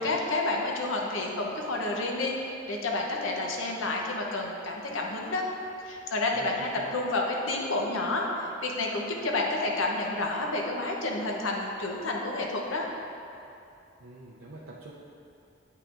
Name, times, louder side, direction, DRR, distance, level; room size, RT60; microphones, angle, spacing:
voice 1, 0.0-2.3 2.7-5.4 5.9-12.8, left 2 dB, 85° left, 0 dB, 0.8 m, -30 dB
voice 2, 6.3-7.0 14.0-14.9, right 2 dB, 80° right, -5 dB, 0.6 m, -45 dB
8.4 x 5.6 x 2.5 m, 2.7 s
head